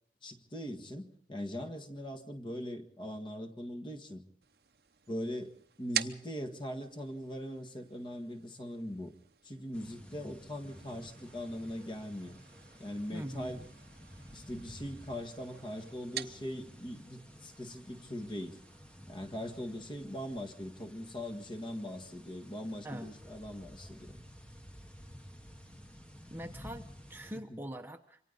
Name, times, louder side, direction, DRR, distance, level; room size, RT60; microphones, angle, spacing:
voice 1, 0.2-4.2 5.1-9.1 9.4-12.4 12.8-13.7 14.3-18.6 19.1-24.2 27.5-27.6, equal, 25° left, 6 dB, 1.7 m, -41 dB
sound 1, 4.4-18.8, right 11 dB, 60° right, 0.9 m, -46 dB
sound 2, 9.7-27.4, equal, 5° left, 1.2 m, -53 dB
voice 2, 13.1-13.6 22.8-23.1 26.3-28.2, equal, 10° right, 4 dB, 1.0 m, -43 dB
27.5 x 24.5 x 4.0 m, 0.62 s
head